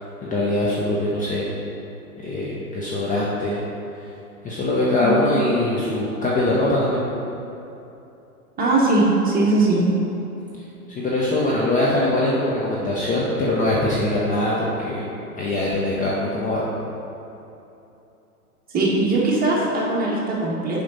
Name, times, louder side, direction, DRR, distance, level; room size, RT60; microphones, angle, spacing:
voice 1, 0.0-1.5 2.2-3.6 4.4-7.0 10.9-15.1 15.4-16.6, left 1 dB, 20° left, -5 dB, 0.7 m, -22 dB
voice 2, 8.6-9.8 18.7-20.8, right 2 dB, 20° right, -5 dB, 1.6 m, -20 dB
7.3 x 5.1 x 4.1 m, 2.9 s
hypercardioid pair, 110°, 45 cm